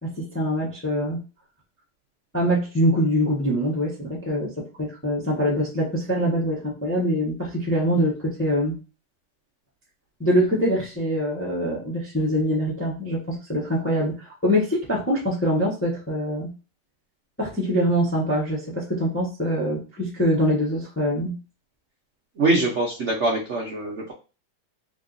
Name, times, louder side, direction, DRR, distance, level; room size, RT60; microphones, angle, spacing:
voice 1, 0.0-1.2 2.3-8.8 10.2-16.5 17.4-21.3, equal, 10° left, -3 dB, 0.6 m, -24 dB
voice 2, 22.4-24.1, right 2 dB, 60° right, -2 dB, 0.7 m, -23 dB
3.6 x 2.4 x 3.9 m, 0.31 s
omnidirectional pair, 2.2 m